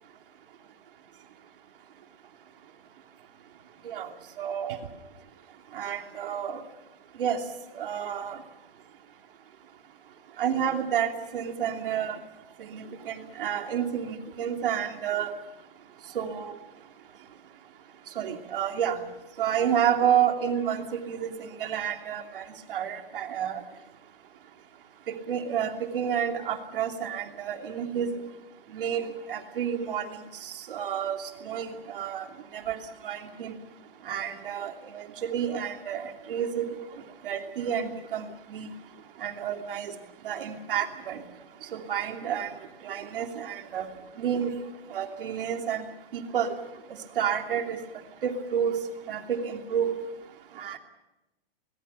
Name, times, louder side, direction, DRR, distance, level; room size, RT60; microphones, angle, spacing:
voice 1, 4.4-4.8 5.7-6.6 7.2-7.4 7.7-8.4 10.4-12.2 12.6-15.3 16.1-16.5 18.2-19.0 19.4-23.6 25.1-28.1 28.7-32.3 32.5-33.5 34.0-36.7 37.2-38.7 39.2-39.9 40.2-41.2 41.7-42.5 42.8-43.9 44.2-44.5 44.9-45.8 46.1-46.5 47.2-47.8 48.2-48.8 49.1-49.9 50.6-50.8, right 8 dB, 65° right, 4 dB, 2.9 m, -30 dB
25.0 x 21.0 x 6.9 m, 0.97 s
supercardioid pair, 175°, 29 cm